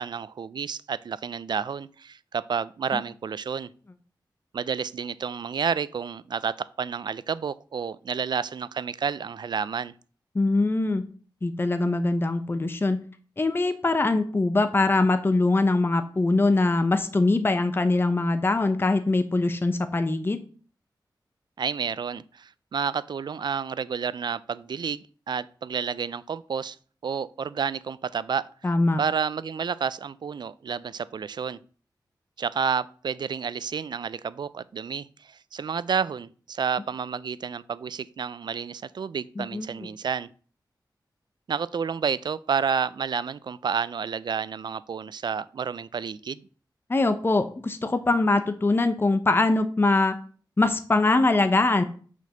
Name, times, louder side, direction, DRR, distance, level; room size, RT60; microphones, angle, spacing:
voice 1, 0.0-3.7 4.5-9.9 21.6-26.8 27.0-28.5 29.0-31.6 32.4-40.3 41.5-46.5, right 6 dB, 65° right, 0.4 m, -30 dB
voice 2, 10.3-11.1 11.4-13.0 13.4-20.4 28.6-29.0 39.4-39.7 46.9-50.2 50.6-51.8, left 2 dB, 30° left, 0.7 m, -22 dB
6.5 x 5.2 x 6.6 m
wide cardioid pair, 105°, 8 cm